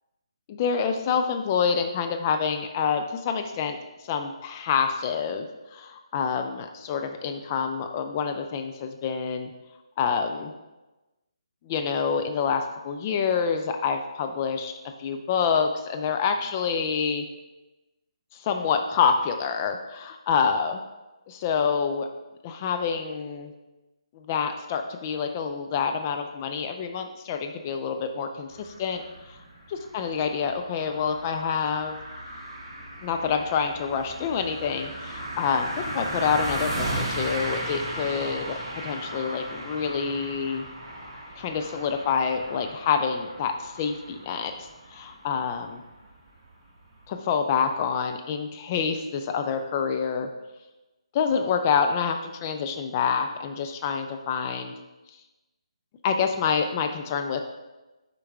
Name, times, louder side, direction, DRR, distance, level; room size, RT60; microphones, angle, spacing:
voice 1, 0.5-3.8 4.0-5.5 5.7-9.5 10.0-10.5 11.6-14.7 15.0-17.3 18.3-20.8 21.3-22.1 22.4-23.5 24.1-29.0 29.3-29.4 29.7-32.0 33.0-40.7 41.4-44.5 44.9-45.8 47.1-50.3 51.1-54.7 56.0-57.4, left 6 dB, 25° left, 5 dB, 0.4 m, -27 dB
sound 1, 28.5-47.1, right 1 dB, 35° right, 1.3 m, -36 dB
6.2 x 4.5 x 3.5 m, 1.1 s
figure-of-eight pair, 145°, 3 cm